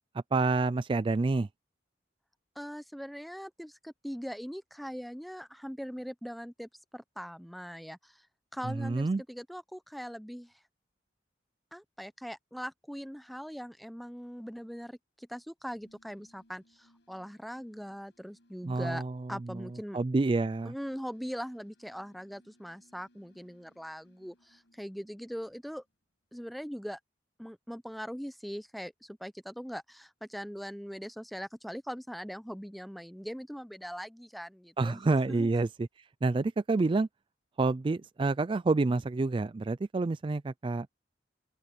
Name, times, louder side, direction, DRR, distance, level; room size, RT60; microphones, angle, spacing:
voice 1, 0.1-1.5 8.6-9.2 18.6-19.7 19.9-20.7 34.8-35.9 36.2-37.1 37.6-40.9, right 3 dB, 30° right, 0.3 m, -28 dB
voice 2, 2.6-8.3 8.5-10.5 11.7-19.0 19.3-20.0 20.7-25.8 26.3-27.0 27.4-35.0 35.3-35.5, equal, ahead, 0.7 m, -41 dB
sound 1, 15.6-26.0, equal, 75° left, 6.3 m, -67 dB
open air
head